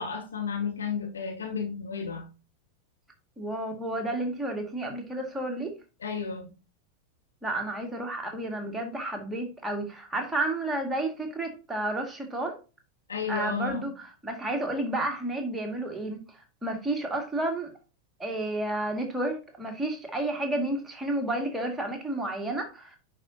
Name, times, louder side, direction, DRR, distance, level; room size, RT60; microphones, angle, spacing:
voice 1, 0.0-2.3 6.0-6.5 13.1-13.8, left 6 dB, 70° left, 2.3 m, -32 dB
voice 2, 3.4-5.7 7.4-12.6 13.3-17.7 18.2-23.0, right 1 dB, 5° right, 2.0 m, -31 dB
10.5 x 4.9 x 2.8 m
figure-of-eight pair, 90°, 0 cm